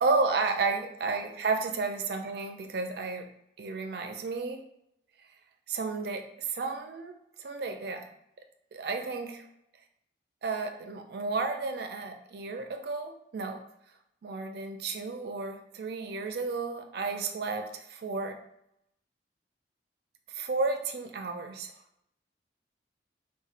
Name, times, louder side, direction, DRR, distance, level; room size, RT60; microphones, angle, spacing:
voice 1, 0.0-3.3 3.6-4.7 5.7-8.1 8.7-9.4 10.4-13.6 14.2-18.4 20.3-21.7, right 4 dB, 60° right, 5 dB, 0.4 m, -32 dB
4.1 x 2.1 x 2.5 m, 0.77 s
head